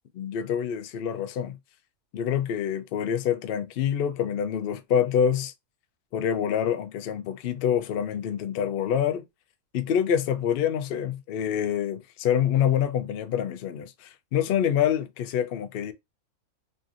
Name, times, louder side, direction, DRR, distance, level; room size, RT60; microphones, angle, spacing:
voice 1, 0.1-1.6 2.1-5.5 6.1-9.2 9.7-15.9, left 9 dB, 80° left, 0.5 m, -26 dB
3.2 x 2.6 x 2.5 m
omnidirectional pair, 1.5 m